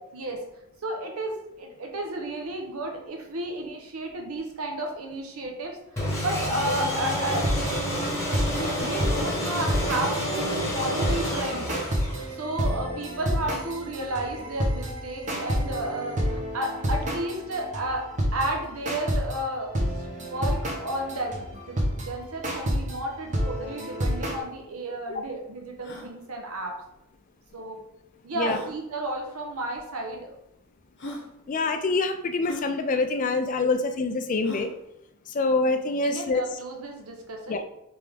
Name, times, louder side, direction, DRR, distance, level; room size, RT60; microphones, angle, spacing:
voice 1, 0.8-7.5 8.5-11.7 12.3-18.0 18.3-26.8 27.5-27.8 28.2-30.3 36.0-37.6, right 1 dB, 75° right, 2 dB, 0.8 m, -32 dB
sound 1, 6.0-12.5, equal, 15° left, 1.1 m, -29 dB
sound 2, 7.2-19.4 19.7-24.4, equal, 35° right, 0.7 m, -30 dB
sound 3, 24.5-24.6 25.1-25.2 25.7-26.1 27.4-27.5 28.4-28.7 29.7-29.8 30.6-30.7 31.0-31.3 32.4-32.7 34.4-34.8, left 1 dB, 55° left, 0.8 m, -39 dB
voice 2, 31.5-34.7 35.3-36.4 37.5-37.6, left 3 dB, 35° left, 8 dB, 0.3 m, -25 dB
3.4 x 3.3 x 3.5 m, 0.82 s
head